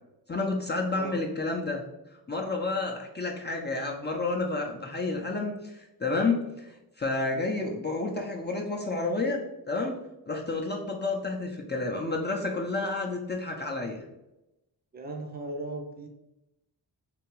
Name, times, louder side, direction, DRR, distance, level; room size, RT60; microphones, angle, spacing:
voice 1, 0.3-1.8 2.3-9.9 10.3-14.0, left 3 dB, 25° left, 0 dB, 0.6 m, -30 dB
voice 2, 14.9-16.1, right 2 dB, 20° right, 3 dB, 0.7 m, -37 dB
3.4 x 2.9 x 3.0 m, 0.94 s
cardioid pair, 60°, 43 cm